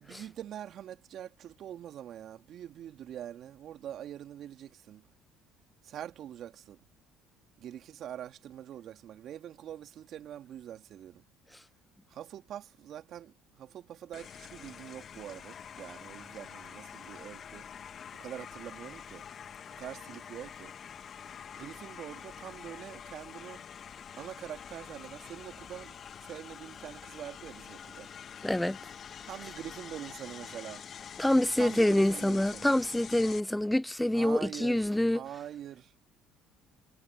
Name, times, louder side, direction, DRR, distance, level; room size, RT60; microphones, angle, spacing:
voice 1, 0.0-5.0 5.8-6.8 7.6-11.2 12.1-17.7 18.1-19.2 19.7-20.7 21.5-23.6 24.2-26.0 26.2-28.1 29.3-30.8 31.6-32.7 34.1-34.8 35.1-35.9, right 10 dB, 55° right, 2.6 m, -44 dB
sound 1, 14.1-33.4, left 8 dB, 45° left, 1.8 m, -46 dB
voice 2, 28.4-28.8 31.2-35.2, left 1 dB, 5° left, 0.5 m, -26 dB
hypercardioid pair, 60°, 0 cm